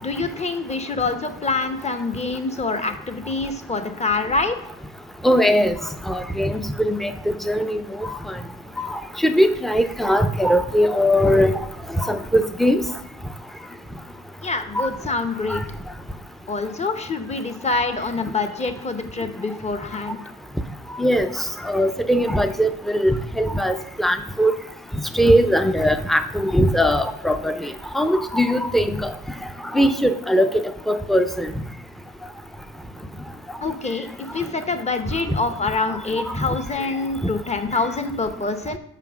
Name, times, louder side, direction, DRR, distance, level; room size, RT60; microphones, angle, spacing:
voice 1, 0.0-4.6 14.4-15.6 16.5-20.2 33.6-38.8, left 3 dB, 20° left, 8 dB, 0.8 m, -26 dB
voice 2, 5.2-5.7 6.1-7.1 7.5-8.1 8.9-11.6 12.0-12.8 14.8-14.9 15.5-15.6 21.0-21.3 21.6-24.5 25.1-27.6 27.9-29.1 29.7-30.5 30.9-31.5, equal, ahead, 9 dB, 0.5 m, -20 dB
5.9 x 4.4 x 5.9 m, 0.79 s
cardioid pair, 90°, 30 cm